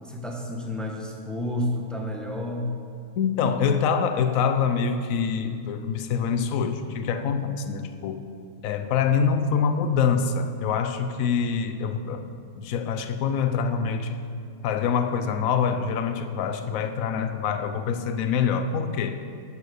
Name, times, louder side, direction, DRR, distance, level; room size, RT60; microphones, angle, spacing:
voice 1, 0.0-2.7, left 1 dB, ahead, 0 dB, 0.7 m, -30 dB
voice 2, 3.2-8.2 8.6-12.3 12.5-14.2 14.6-19.2, left 6 dB, 65° left, 8 dB, 1.0 m, -25 dB
11.0 x 7.1 x 5.0 m, 2.3 s
omnidirectional pair, 1.7 m